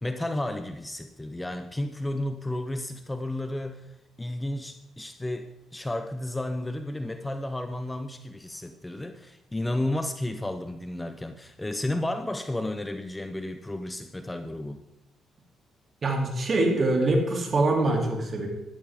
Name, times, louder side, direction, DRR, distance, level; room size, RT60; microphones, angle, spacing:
voice 1, 0.0-3.9 4.2-14.8, left 1 dB, 10° left, 8 dB, 0.8 m, -32 dB
voice 2, 16.0-18.5, right 2 dB, 40° right, 1 dB, 3.0 m, -24 dB
12.5 x 12.0 x 3.7 m, 0.85 s
cardioid pair, 90°, 0 cm